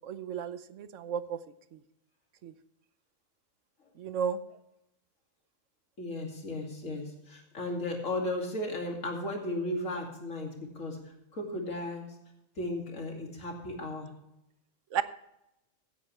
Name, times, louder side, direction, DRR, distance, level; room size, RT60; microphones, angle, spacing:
voice 1, 0.0-1.4 2.4-2.5 4.0-4.4 14.9-15.0, right 7 dB, 70° right, 13 dB, 1.1 m, -33 dB
voice 2, 6.0-11.0 11.3-12.1 12.6-14.1, left 1 dB, 80° left, 1 dB, 2.9 m, -35 dB
15.5 x 9.5 x 3.2 m, 0.85 s
omnidirectional pair, 1.3 m